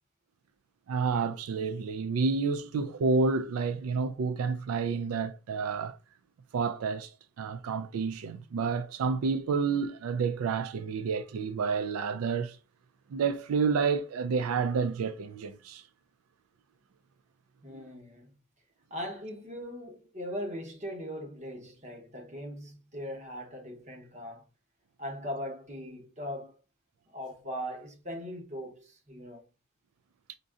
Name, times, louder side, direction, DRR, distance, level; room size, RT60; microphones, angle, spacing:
voice 1, 0.9-6.0 6.5-12.6 13.1-15.8 30.3-30.4, right 5 dB, 90° right, 0.3 m, -29 dB
voice 2, 17.6-18.3 18.9-24.5 25.0-26.6 27.1-29.4, equal, 35° right, 0.9 m, -40 dB
5.0 x 2.6 x 2.4 m
head